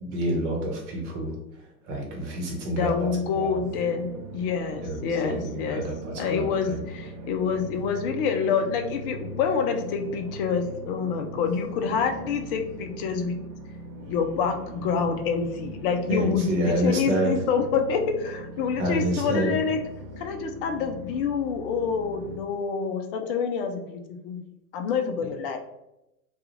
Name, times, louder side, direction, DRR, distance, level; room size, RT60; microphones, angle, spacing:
voice 1, 0.0-1.4 1.8-3.6 4.8-6.8 16.1-17.3 18.8-19.6, right 1 dB, 50° right, 0 dB, 1.0 m, -28 dB
voice 2, 2.7-5.8 6.2-13.4 14.1-19.8 20.2-24.4 24.7-25.6, left 6 dB, 40° left, 5 dB, 0.4 m, -27 dB
sound 1, 3.6-22.4, right 1 dB, 65° right, 0.6 m, -40 dB
2.3 x 2.3 x 3.0 m, 0.89 s
figure-of-eight pair, 90°, 45 cm